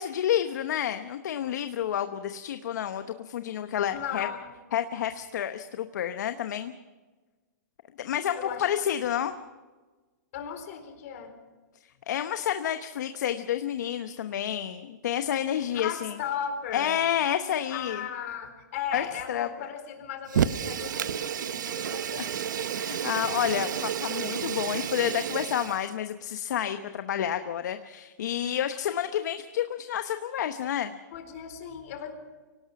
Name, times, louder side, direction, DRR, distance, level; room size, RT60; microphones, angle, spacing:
voice 1, 0.0-4.3 4.7-6.7 8.0-9.4 11.8-16.1 16.7-18.0 18.9-19.5 22.2-22.3 22.7-30.9, left 10 dB, 70° left, 9 dB, 1.0 m, -29 dB
voice 2, 3.9-4.5 8.3-9.3 10.3-11.3 15.5-16.9 17.7-22.5 31.1-32.1, left 8 dB, 50° left, 6 dB, 4.1 m, -37 dB
Fire, 20.3-25.9, right 8 dB, 80° right, 0.9 m, -31 dB
24.5 x 18.0 x 5.9 m, 1.3 s
hypercardioid pair, 150°, 10 cm